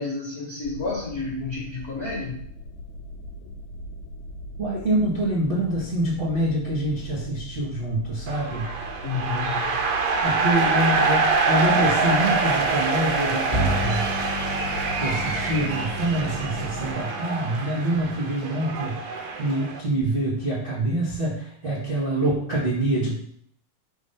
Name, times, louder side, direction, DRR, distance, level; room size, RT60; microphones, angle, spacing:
voice 1, 0.0-2.4 9.0-9.6, left 4 dB, 70° left, -7 dB, 0.8 m, -30 dB
sound 1, 0.6-17.0, equal, 90° left, 1.6 m, -40 dB
voice 2, 4.6-8.7 10.2-14.1 15.0-19.0 19.4-23.2, right 1 dB, 60° right, -7 dB, 0.5 m, -26 dB
sound 2, 8.3-19.8, right 4 dB, 80° right, 2.3 m, -25 dB
Bowed string instrument, 13.5-19.2, left 1 dB, 10° left, 0.6 m, -33 dB
5.3 x 3.5 x 5.6 m, 0.63 s
omnidirectional pair, 4.1 m